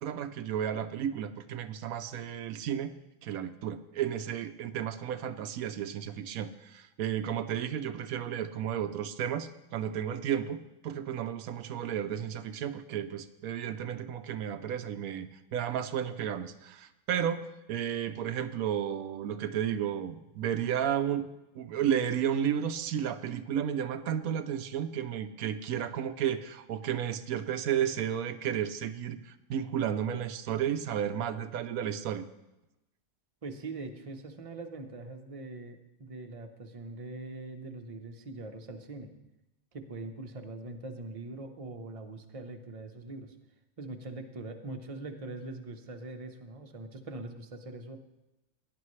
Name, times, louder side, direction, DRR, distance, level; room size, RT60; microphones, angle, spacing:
voice 1, 0.0-2.9 3.2-21.3 21.6-32.3, right 9 dB, 90° right, 10 dB, 1.1 m, -33 dB
voice 2, 33.4-39.1 39.7-43.3 43.8-48.0, right 2 dB, 30° right, 4 dB, 0.9 m, -42 dB
17.0 x 10.5 x 3.2 m, 0.95 s
omnidirectional pair, 1.4 m